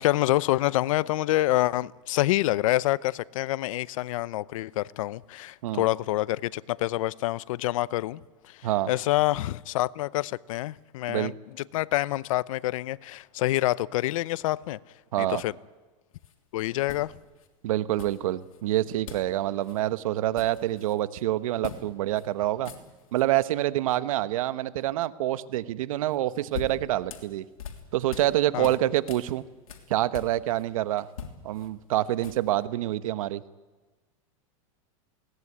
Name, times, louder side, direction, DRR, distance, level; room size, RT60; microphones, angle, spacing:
voice 1, 0.0-8.2 8.5-11.3 11.7-14.8 15.2-15.5 16.5-17.1 28.5-28.8, left 16 dB, 70° left, 0.7 m, -27 dB
sound 1, 16.2-16.3 16.9-17.5 18.0-18.6 19.1-19.3 19.6-19.8 20.1-21.0 21.6-21.8 22.1-22.3 22.5-23.3 26.1-28.3 28.6-30.7 31.0-32.6, left 7 dB, 90° left, 3.3 m, -42 dB
voice 2, 17.6-22.7 23.1-27.4 27.9-29.4 29.9-31.1 31.4-33.4, right 14 dB, 75° right, 1.1 m, -27 dB
21.0 x 18.0 x 9.8 m
supercardioid pair, 125°, 18 cm